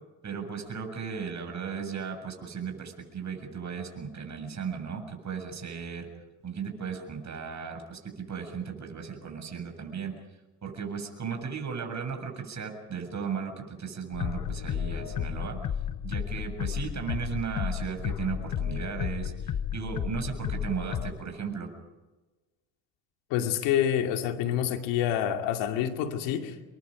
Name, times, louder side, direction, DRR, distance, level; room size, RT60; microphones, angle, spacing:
voice 1, 0.2-6.1 6.4-10.1 10.6-15.6 16.0-21.7, right 6 dB, 40° right, 5 dB, 7.4 m, -36 dB
sound 1, 14.1-21.1, left 8 dB, 45° left, 1.5 m, -33 dB
voice 2, 23.3-26.6, left 10 dB, 85° left, 5 dB, 2.6 m, -27 dB
28.5 x 23.0 x 5.2 m, 1.2 s
supercardioid pair, 80°, 43 cm